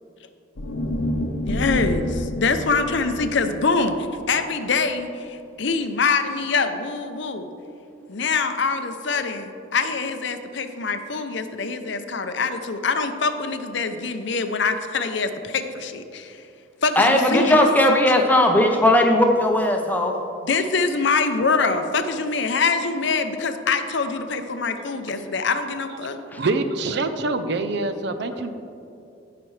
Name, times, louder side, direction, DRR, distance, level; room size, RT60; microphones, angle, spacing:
sound 1, 0.5-4.8, equal, 85° left, 0.9 m, -29 dB
voice 1, 1.4-4.0 4.3-7.5 8.1-16.4 16.8-17.7 20.4-26.2, left 4 dB, 60° left, 8 dB, 0.6 m, -24 dB
voice 2, 17.0-20.2 26.3-26.4, left 1 dB, 10° left, 2 dB, 0.7 m, -17 dB
voice 3, 26.4-28.5, right 3 dB, 55° right, 9 dB, 0.5 m, -25 dB
17.0 x 5.9 x 3.2 m, 2.7 s
head